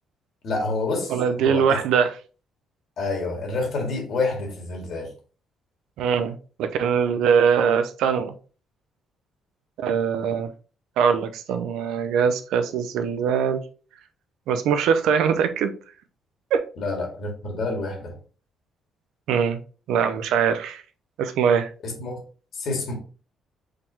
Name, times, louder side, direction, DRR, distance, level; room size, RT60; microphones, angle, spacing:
voice 1, 0.4-1.7 3.0-5.1 16.8-18.2 21.8-22.2 22.5-22.9, left 3 dB, 55° left, 1 dB, 1.9 m, -28 dB
voice 2, 1.1-2.1 6.0-8.3 9.8-10.5 11.0-13.6 14.5-15.7 16.5-16.6 19.3-19.6 19.9-20.8 21.2-21.7, right 7 dB, 85° right, 9 dB, 0.6 m, -22 dB
4.9 x 3.7 x 2.8 m, 0.37 s
cardioid pair, 145°, 0 cm